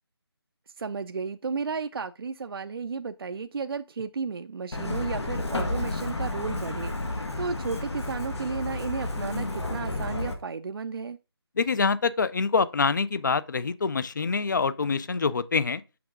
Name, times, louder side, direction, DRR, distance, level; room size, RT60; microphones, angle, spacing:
voice 1, 0.8-11.2, right 5 dB, 60° right, 0.4 m, -33 dB
Truck, 4.7-10.3, left 2 dB, 85° left, 1.6 m, -31 dB
voice 2, 11.6-15.8, left 5 dB, 45° left, 0.4 m, -25 dB
6.1 x 5.9 x 3.6 m
figure-of-eight pair, 170°, 14 cm